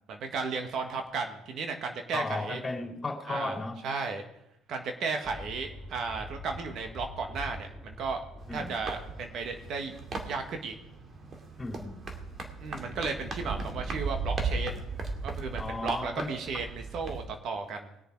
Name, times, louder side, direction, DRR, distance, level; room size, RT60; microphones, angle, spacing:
voice 1, 0.1-2.6 3.3-3.6 3.8-4.2 4.7-8.2 8.5-10.0 10.2-10.7 12.6-14.8 15.2-17.9, right 4 dB, 60° right, 5 dB, 1.7 m, -34 dB
voice 2, 2.1-3.8 8.5-8.7 11.6-12.0 15.6-16.4, left 3 dB, 25° left, 2 dB, 3.2 m, -35 dB
sound 1, 5.2-11.4 11.9-12.0 12.5-15.6, equal, ahead, 2.7 m, -45 dB
sound 2, 8.4-17.3, right 4 dB, 45° right, 2.3 m, -37 dB
20.5 x 6.9 x 4.7 m, 0.80 s
hypercardioid pair, 65°, 0 cm